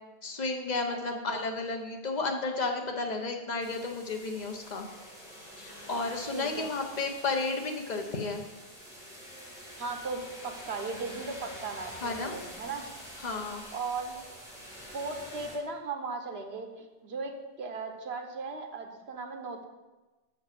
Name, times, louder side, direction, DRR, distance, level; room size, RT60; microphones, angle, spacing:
voice 1, 0.2-4.9 5.6-8.4 12.0-12.3 13.2-13.6, left 3 dB, 45° left, 3 dB, 1.0 m, -32 dB
voice 2, 0.9-1.4 6.3-6.7 9.8-12.9 13.7-14.2 14.9-19.7, right 4 dB, 75° right, 4 dB, 1.2 m, -37 dB
sound 1, 3.6-15.5, equal, 5° right, 2.1 m, -47 dB
6.2 x 5.5 x 6.7 m, 1.2 s
omnidirectional pair, 1.1 m